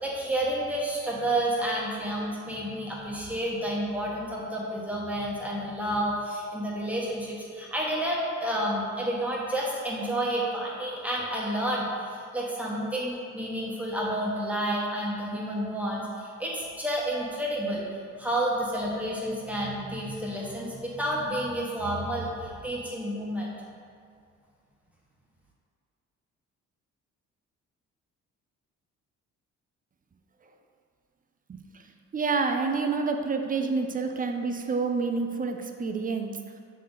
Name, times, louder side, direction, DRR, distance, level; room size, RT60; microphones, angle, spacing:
voice 1, 0.0-17.9 18.2-23.5, right 1 dB, 5° right, -5 dB, 1.4 m, -30 dB
voice 2, 32.1-36.4, right 4 dB, 30° right, 4 dB, 0.6 m, -28 dB
6.5 x 4.1 x 3.9 m, 2.3 s
cardioid pair, 90°, 30 cm